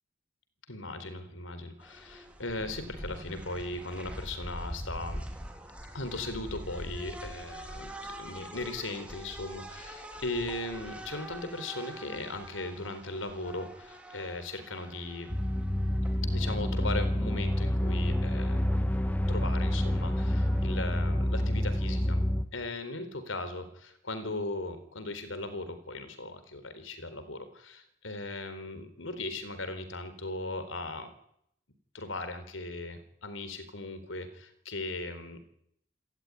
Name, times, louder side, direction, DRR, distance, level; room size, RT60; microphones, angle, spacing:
voice 1, 0.7-5.2 5.9-7.9 8.2-15.3 16.3-18.7 19.3-22.2 22.5-31.1 31.9-35.4, left 2 dB, 90° left, 10 dB, 4.2 m, -38 dB
sound 1, 1.8-20.8, equal, 5° right, 3.2 m, -45 dB
sound 2, 15.3-22.4, left 1 dB, 10° left, 1.4 m, -28 dB
29.0 x 14.0 x 9.9 m, 0.73 s
head